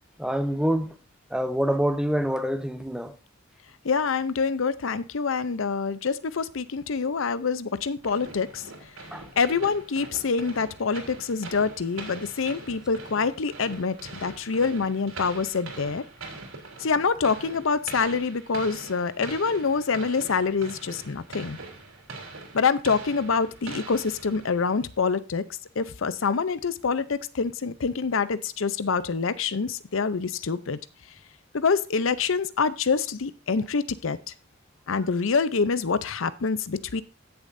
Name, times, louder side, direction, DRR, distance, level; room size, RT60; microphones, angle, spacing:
voice 1, 0.2-0.9 1.3-3.2 9.1-9.3, equal, 5° right, 0.7 m, -26 dB
voice 2, 3.8-8.6 9.4-16.0 16.8-21.6 22.5-25.4 25.8-30.8 31.5-34.2 34.9-37.0, left 5 dB, 70° left, 0.6 m, -26 dB
sound 1, 8.0-24.8, right 3 dB, 85° right, 3.3 m, -42 dB
16.0 x 7.0 x 2.6 m
head